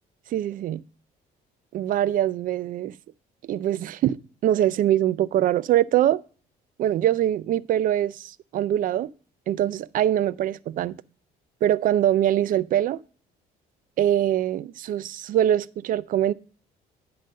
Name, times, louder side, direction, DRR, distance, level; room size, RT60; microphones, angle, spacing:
voice 1, 0.3-0.8 1.7-2.9 3.5-4.2 4.4-6.2 6.8-9.1 9.5-11.0 11.6-13.0 14.0-16.3, right 12 dB, 55° right, 0.4 m, -23 dB
10.5 x 4.0 x 6.4 m
cardioid pair, 110°, 17 cm